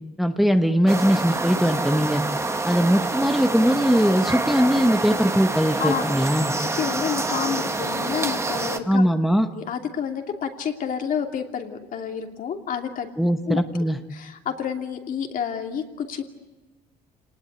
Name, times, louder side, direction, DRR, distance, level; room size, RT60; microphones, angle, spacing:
voice 1, 0.2-2.2 2.6-6.5 8.9-9.5 13.2-14.0, equal, ahead, 6 dB, 1.2 m, -20 dB
sound 1, 0.9-8.8, right 2 dB, 15° right, 1.6 m, -27 dB
voice 2, 5.8-6.1 6.6-9.1 9.6-13.1 13.5-13.6 14.1-16.2, left 7 dB, 55° left, 3 dB, 2.8 m, -29 dB
27.5 x 19.5 x 9.3 m, 1.2 s
cardioid pair, 110°, 17 cm